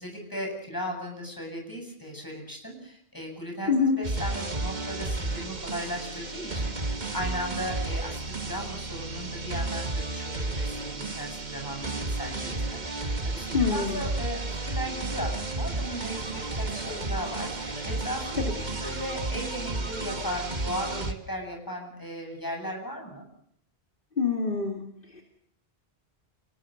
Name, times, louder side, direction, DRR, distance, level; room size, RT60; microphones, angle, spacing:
voice 1, 0.0-14.4 14.6-23.3, equal, 20° left, 2 dB, 7.9 m, -37 dB
voice 2, 3.7-4.0 13.5-14.0 18.4-18.5 24.2-24.8 25.1-25.2, left 5 dB, 50° left, 1 dB, 3.0 m, -25 dB
sound 1, 4.0-21.1, right 2 dB, 40° right, 2.0 m, -32 dB
29.5 x 19.5 x 6.7 m, 0.70 s
omnidirectional pair, 1.1 m